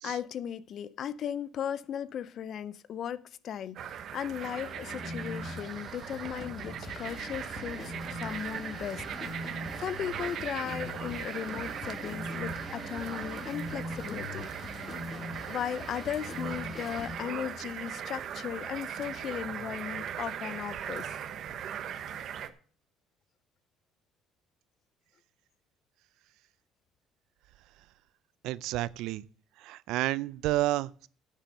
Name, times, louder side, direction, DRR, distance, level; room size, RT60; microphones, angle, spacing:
voice 1, 0.0-14.9 15.5-21.2, left 9 dB, 45° left, 0.5 m, -37 dB
sound 1, 3.8-22.5, right 9 dB, 50° right, 0.9 m, -39 dB
sound 2, 4.4-17.2, left 2 dB, 30° left, 1.3 m, -42 dB
voice 2, 28.4-29.2 29.6-31.1, right 16 dB, 80° right, 0.4 m, -30 dB
10.5 x 7.4 x 6.6 m
cardioid pair, 145°, 0 cm